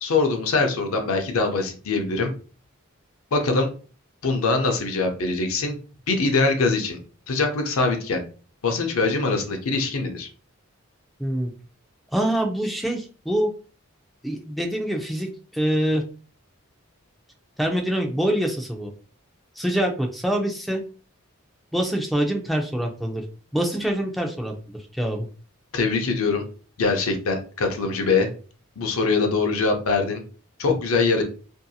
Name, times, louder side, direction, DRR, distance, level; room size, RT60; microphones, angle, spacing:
voice 1, 0.0-2.3 3.3-3.7 4.2-5.8 6.1-7.0 7.3-8.2 8.6-10.3 25.7-26.4 26.8-28.3 28.8-30.2 30.6-31.2, left 3 dB, 80° left, 4 dB, 0.6 m, -23 dB
voice 2, 12.1-13.5 14.2-16.0 17.6-18.9 19.6-20.8 21.7-23.2 23.5-25.3, right 1 dB, ahead, 1 dB, 0.4 m, -25 dB
2.6 x 2.6 x 2.3 m, 0.38 s
head